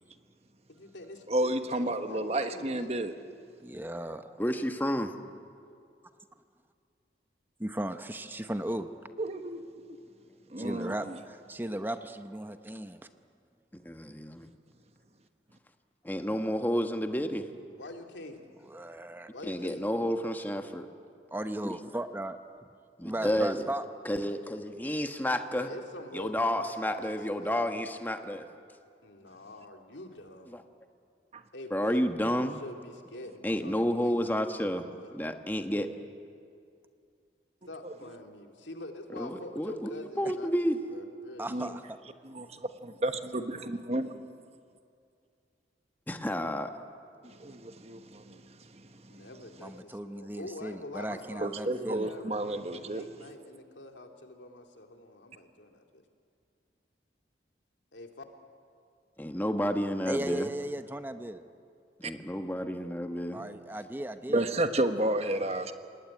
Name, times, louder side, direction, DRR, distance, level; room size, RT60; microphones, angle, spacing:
voice 1, 0.7-3.1 17.7-18.4 19.0-19.9 25.5-27.6 29.0-30.6 31.5-32.0 32.4-35.1 37.7-41.8 49.1-56.0 57.9-58.2, left 1 dB, 90° left, 4 dB, 2.6 m, -46 dB
voice 2, 1.3-3.1 9.2-10.0 10.5-11.2 31.3-31.4 41.5-41.7 42.2-44.3 47.2-48.4 48.7-48.8 49.1-49.2 51.4-53.0 62.0-62.1 64.3-65.7, right 1 dB, 35° right, 8 dB, 1.2 m, -31 dB
voice 3, 3.6-4.4 7.6-8.9 10.6-13.0 18.7-19.3 21.3-22.4 23.0-23.8 41.4-42.0 49.6-52.1 60.1-61.4 63.3-64.5, right 1 dB, 10° right, 9 dB, 0.8 m, -36 dB
voice 4, 4.4-5.1 10.6-10.9 13.7-14.5 16.0-17.5 19.4-20.9 23.0-23.7 24.0-25.7 26.1-28.5 30.5-30.6 31.7-32.6 33.4-35.9 39.2-40.8 46.1-46.7 59.2-60.5 62.0-63.4, equal, 10° left, 6 dB, 1.2 m, -31 dB
26.5 x 19.5 x 9.7 m, 2.4 s
head